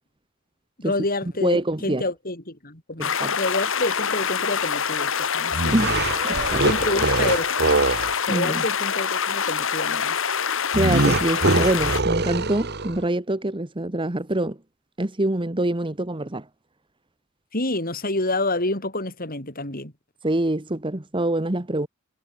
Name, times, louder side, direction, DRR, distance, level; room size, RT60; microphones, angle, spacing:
voice 1, 0.8-5.8 6.6-7.7 8.3-10.2 17.5-19.9, left 2 dB, 40° left, 6.8 m, -28 dB
voice 2, 1.4-2.0 3.0-3.3 5.7-6.0 6.2-6.6 8.3-8.6 10.7-14.6 15.0-16.5 20.2-21.9, right 1 dB, 25° right, 1.2 m, -25 dB
sound 1, 3.0-12.0, left 7 dB, 65° left, 1.8 m, -25 dB
sound 2, 5.5-8.1 10.7-13.0, right 3 dB, 50° right, 1.6 m, -23 dB
head